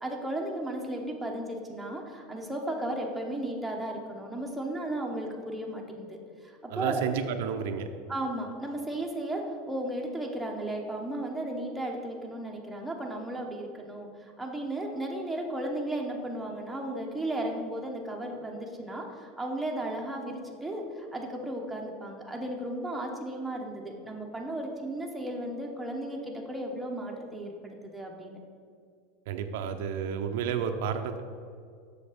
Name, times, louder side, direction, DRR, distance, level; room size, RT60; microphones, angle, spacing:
voice 1, 0.0-7.0 8.1-28.4, right 1 dB, ahead, -1 dB, 1.0 m, -35 dB
voice 2, 6.7-7.9 29.3-31.2, right 7 dB, 75° right, 7 dB, 0.6 m, -31 dB
7.2 x 6.5 x 5.0 m, 2.2 s
supercardioid pair, 145°, 0 cm